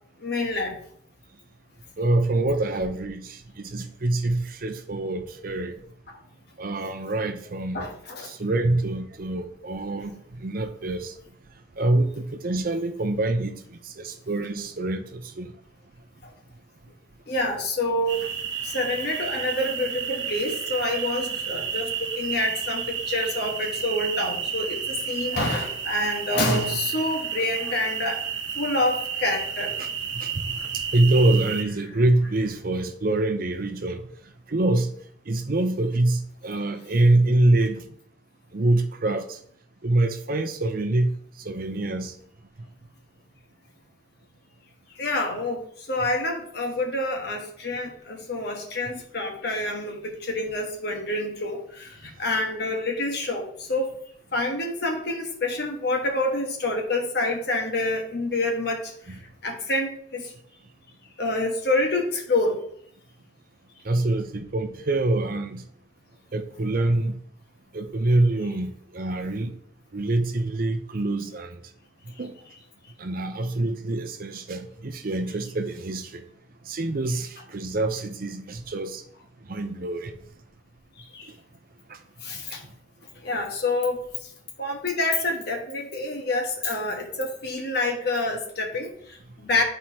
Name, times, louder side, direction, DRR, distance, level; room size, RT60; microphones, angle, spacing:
voice 1, 0.2-0.8 7.7-8.3 16.2-16.3 17.3-18.3 18.6-28.2 28.5-29.7 44.9-53.9 54.3-60.3 61.2-62.6 81.0-81.3 82.2-82.6 83.2-84.3 84.6-89.6, left 2 dB, 55° left, 2 dB, 1.3 m, -27 dB
voice 2, 2.0-5.8 6.6-7.9 8.3-11.1 11.8-15.5 29.8-29.9 30.1-34.1 34.5-34.9 35.3-37.9 38.5-39.4 39.8-41.1 41.4-42.1 59.1-59.2 63.8-65.6 66.3-67.2 67.7-69.5 69.9-71.6 72.2-72.3 73.0-76.2 76.7-79.0 79.5-80.1 81.9-82.0, right 2 dB, 45° right, 8 dB, 0.6 m, -25 dB
sound 1, 18.1-31.6, right 7 dB, 65° right, 0.9 m, -31 dB
11.5 x 4.4 x 2.8 m, 0.66 s
head